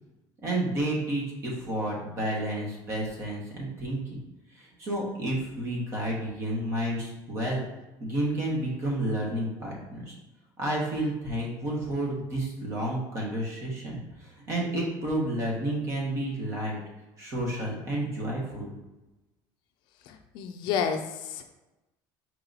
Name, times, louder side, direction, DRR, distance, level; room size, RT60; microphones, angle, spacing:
voice 1, 0.4-4.2 4.5-7.6 8.0-10.1 10.6-16.8 17.2-18.7, right 1 dB, 35° right, -2 dB, 1.3 m, -31 dB
voice 2, 20.1-21.4, left 7 dB, 55° left, 5 dB, 0.4 m, -30 dB
4.7 x 2.9 x 3.9 m, 1.0 s
cardioid pair, 175°, 9 cm